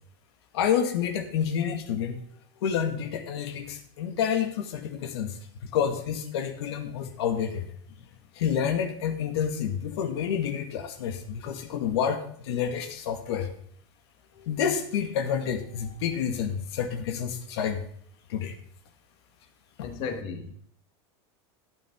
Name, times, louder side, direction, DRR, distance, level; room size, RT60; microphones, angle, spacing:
voice 1, 0.5-2.2 2.6-5.3 5.7-7.7 8.3-13.5 14.4-17.8 18.3-18.6 19.8-19.9, left 8 dB, 80° left, 6 dB, 1.7 m, -29 dB
voice 2, 19.8-20.7, left 5 dB, 45° left, 5 dB, 1.6 m, -35 dB
12.5 x 9.1 x 3.7 m, 0.63 s
supercardioid pair, 160°, 13 cm